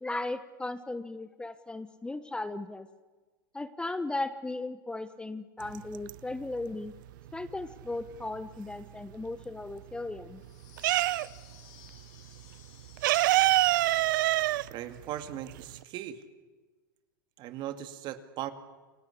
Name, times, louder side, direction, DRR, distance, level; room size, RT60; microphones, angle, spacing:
voice 1, 0.0-2.9 3.5-6.9 7.3-10.4, left 2 dB, 10° left, 12 dB, 1.0 m, -36 dB
sound 1, 5.6-6.5 6.9-8.8 9.2-11.6 11.8-12.0 12.3-15.8, right 16 dB, 65° right, 0.8 m, -26 dB
sound 2, 10.3-14.4, left 9 dB, 55° left, 6.5 m, -57 dB
voice 2, 14.7-16.2 17.4-18.5, right 12 dB, 45° right, 9 dB, 2.3 m, -38 dB
29.5 x 19.5 x 8.4 m, 1.3 s
hypercardioid pair, 110°, 11 cm